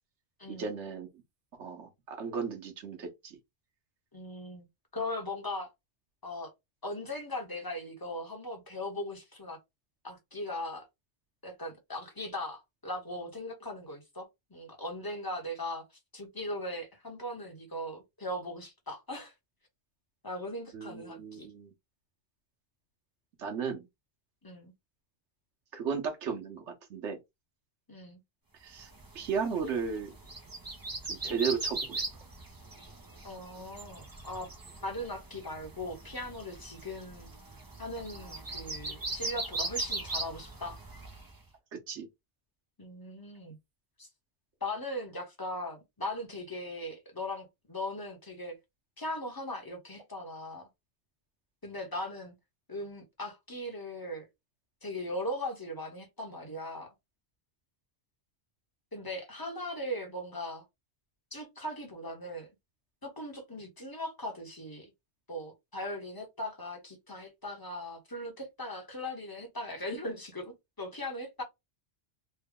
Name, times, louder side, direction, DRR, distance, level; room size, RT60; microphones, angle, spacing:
voice 1, 0.5-1.1 1.5-3.4 20.7-21.7 23.4-23.9 25.7-27.2 28.6-28.9 29.1-30.1 31.1-32.0 41.7-42.1, right 6 dB, 90° right, 1.2 m, -35 dB
voice 2, 4.1-4.7 4.9-5.7 6.2-6.5 6.8-9.6 10.0-10.9 11.4-15.8 16.1-19.3 20.2-21.5 24.4-24.7 27.9-28.2 33.2-34.5 34.8-37.3 37.8-40.8 42.8-43.6 44.0-44.1 44.6-48.6 49.0-50.7 51.6-52.3 52.7-54.3 54.8-56.9 58.9-60.6 61.3-62.5 63.0-64.9 65.3-71.4, left 1 dB, 20° left, 1.0 m, -39 dB
sound 1, 28.9-41.3, right 2 dB, 25° right, 0.6 m, -40 dB
3.3 x 2.2 x 3.5 m
omnidirectional pair, 1.2 m